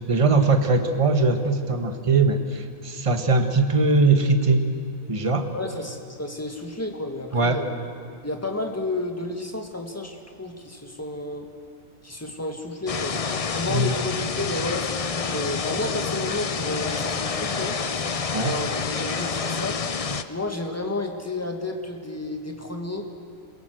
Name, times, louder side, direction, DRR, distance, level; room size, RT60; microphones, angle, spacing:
voice 1, 0.1-4.7 5.1-5.5 7.3-7.6 13.7-14.0 18.3-18.5, right 3 dB, 25° right, 6 dB, 1.3 m, -21 dB
voice 2, 5.5-7.7 8.2-11.5 12.0-17.8 18.4-19.8 20.3-23.1, left 2 dB, 10° left, 3 dB, 1.8 m, -31 dB
sound 1, 12.9-20.2, left 5 dB, 35° left, 0.6 m, -28 dB
28.0 x 17.0 x 7.8 m, 2.5 s
omnidirectional pair, 1.4 m